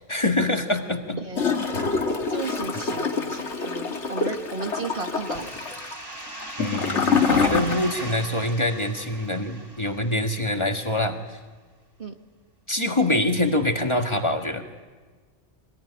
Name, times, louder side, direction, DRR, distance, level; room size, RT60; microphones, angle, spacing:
voice 1, 0.0-1.2 6.6-11.2 12.7-14.6, left 1 dB, 25° left, 4 dB, 1.8 m, -25 dB
voice 2, 1.2-1.7 2.3-5.5 12.0-12.1, right 3 dB, 50° right, 5 dB, 1.7 m, -34 dB
Gurgling / Toilet flush, 1.3-8.2 8.5-8.6, left 5 dB, 70° left, 2.1 m, -26 dB
sound 1, 5.2-10.7, right 2 dB, 20° right, 2.7 m, -39 dB
24.5 x 20.0 x 9.9 m, 1.4 s
omnidirectional pair, 1.2 m